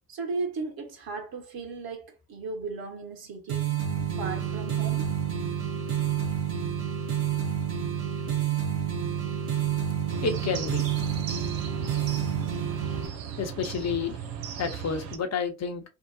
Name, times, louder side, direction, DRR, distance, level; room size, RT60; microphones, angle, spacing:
voice 1, 0.1-3.6 4.1-5.1, right 4 dB, 50° right, 1.7 m, -36 dB
sound 1, 3.5-13.1, right 9 dB, 65° right, 1.8 m, -29 dB
sound 2, 10.1-15.2, right 8 dB, 85° right, 0.7 m, -37 dB
voice 2, 10.2-10.9 13.4-14.2 14.6-15.8, left 5 dB, 35° left, 1.0 m, -30 dB
3.7 x 2.5 x 2.7 m
hypercardioid pair, 60°, 48 cm